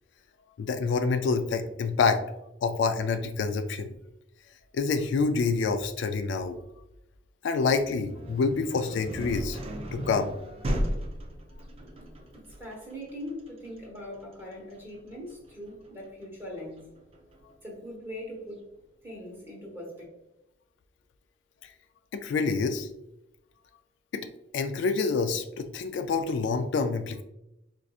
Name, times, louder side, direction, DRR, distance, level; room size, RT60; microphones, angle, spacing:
voice 1, 0.6-2.2 2.6-3.9 4.7-6.6 7.4-9.6 9.9-10.3 22.1-22.9 24.1-24.3 24.5-27.2, left 4 dB, 65° left, 7 dB, 0.3 m, -27 dB
sound 1, 7.8-17.5, equal, 30° right, 0.4 m, -36 dB
voice 2, 12.3-16.9 17.6-18.7 19.0-20.0, left 1 dB, 10° right, -5 dB, 1.2 m, -41 dB
4.5 x 2.6 x 2.4 m, 0.87 s
head